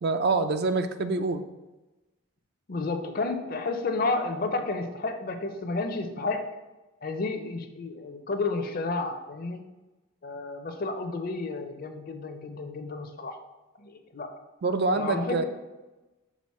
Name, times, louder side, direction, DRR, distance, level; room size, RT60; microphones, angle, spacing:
voice 1, 0.0-1.4 14.6-15.4, right 3 dB, 45° right, 9 dB, 0.4 m, -26 dB
voice 2, 2.7-6.4 7.0-9.6 10.2-13.4 13.8-14.3 14.9-15.4, left 3 dB, 40° left, 7 dB, 0.5 m, -31 dB
6.2 x 3.8 x 4.2 m, 1.1 s
head